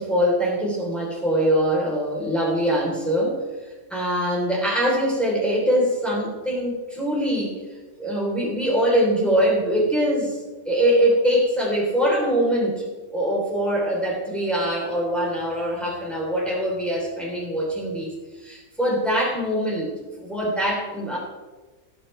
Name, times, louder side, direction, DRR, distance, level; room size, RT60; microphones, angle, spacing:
voice 1, 0.0-3.4 3.9-7.6 8.0-12.9 13.1-21.2, equal, ahead, -4 dB, 3.7 m, -23 dB
18.5 x 8.7 x 3.4 m, 1.2 s
omnidirectional pair, 1.7 m